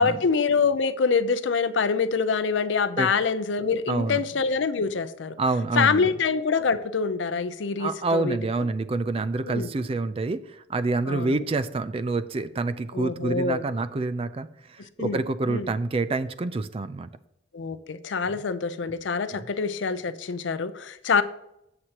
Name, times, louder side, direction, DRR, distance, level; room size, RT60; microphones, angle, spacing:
voice 1, 0.0-5.4 5.8-8.7 9.4-9.7 11.1-11.4 12.9-13.6 15.0-15.2 15.5-15.7 17.5-21.2, left 5 dB, 75° left, 13 dB, 0.5 m, -25 dB
voice 2, 3.9-4.2 5.4-6.1 7.8-17.1, right 3 dB, 30° right, 13 dB, 0.4 m, -27 dB
8.0 x 7.6 x 2.9 m, 0.81 s
head